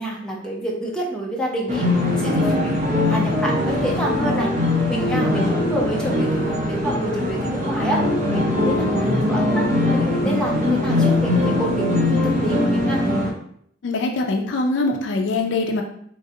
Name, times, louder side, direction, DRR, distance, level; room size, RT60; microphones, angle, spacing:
voice 1, 0.0-1.8 2.1-4.5 4.9-9.7 9.9-13.0, right 1 dB, 5° left, -3 dB, 0.5 m, -28 dB
sound 1, 1.7-13.3, left 2 dB, 40° right, 0.7 m, -21 dB
voice 2, 13.8-15.8, left 2 dB, 65° left, 3 dB, 0.4 m, -23 dB
3.2 x 2.6 x 2.6 m, 0.65 s
head